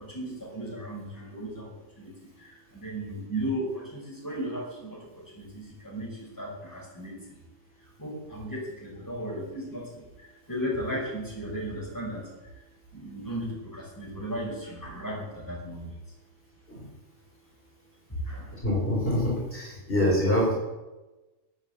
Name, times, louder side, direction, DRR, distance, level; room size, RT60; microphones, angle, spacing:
voice 1, 0.1-1.7 2.0-2.1 2.7-5.0 5.4-7.2 8.0-9.9 10.5-12.2 12.9-15.9 18.3-18.5, equal, 15° left, -3 dB, 5.7 m, -35 dB
voice 2, 18.6-20.5, left 1 dB, 45° left, -4 dB, 4.3 m, -25 dB
14.0 x 7.5 x 8.3 m, 1.1 s
omnidirectional pair, 1.4 m